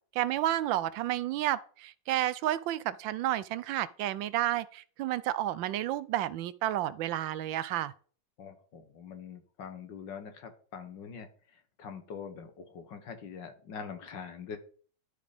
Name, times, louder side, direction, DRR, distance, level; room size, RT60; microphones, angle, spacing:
voice 1, 0.1-7.9, right 13 dB, 80° right, 1.3 m, -31 dB
voice 2, 8.4-11.3 11.8-14.6, left 6 dB, 70° left, 2.0 m, -43 dB
12.5 x 5.1 x 5.2 m
omnidirectional pair, 2.1 m